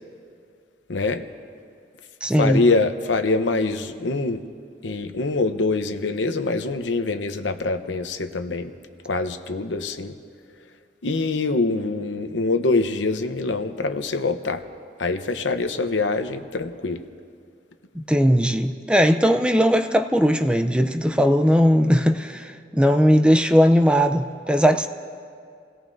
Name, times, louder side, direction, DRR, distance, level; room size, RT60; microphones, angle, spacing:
voice 1, 0.9-1.2 2.4-4.4 4.8-8.7 9.0-10.1 11.0-14.6 15.0-17.0, left 3 dB, 90° left, 8 dB, 0.8 m, -24 dB
voice 2, 2.2-2.7 17.9-24.9, equal, 5° right, 6 dB, 0.5 m, -18 dB
30.0 x 18.0 x 2.6 m, 2.3 s
head